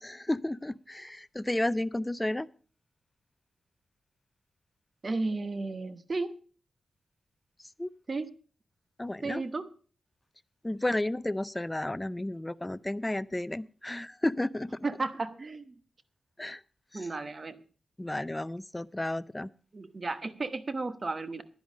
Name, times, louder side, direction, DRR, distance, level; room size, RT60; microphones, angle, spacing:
voice 1, 0.0-2.5 7.8-7.9 9.0-9.4 10.6-14.8 16.4-16.6 16.9-17.0 18.0-19.5, left 1 dB, 15° left, 18 dB, 0.5 m, -32 dB
voice 2, 5.0-6.4 8.1-8.3 9.2-9.7 14.8-15.7 16.9-17.6 19.7-21.4, right 3 dB, 40° right, 12 dB, 1.1 m, -33 dB
10.5 x 10.5 x 5.1 m, 0.41 s
wide cardioid pair, 90°, 0 cm